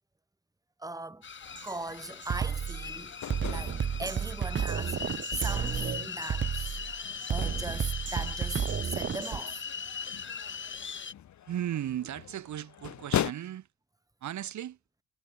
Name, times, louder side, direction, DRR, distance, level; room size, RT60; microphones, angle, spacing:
voice 1, 0.8-1.2 1.6-3.1 3.5-6.8 7.3-9.6, right 2 dB, 10° right, 3.5 m, -39 dB
sound 1, 1.2-11.1, left 6 dB, 40° left, 3.2 m, -40 dB
sound 2, 1.4-13.3, left 11 dB, 70° left, 3.1 m, -41 dB
Drum kit, 1.6-1.7 2.2-9.4, right 7 dB, 40° right, 1.0 m, -32 dB
voice 2, 11.5-13.7 14.2-14.8, right 11 dB, 70° right, 3.1 m, -36 dB
cardioid pair, 90°, 30 cm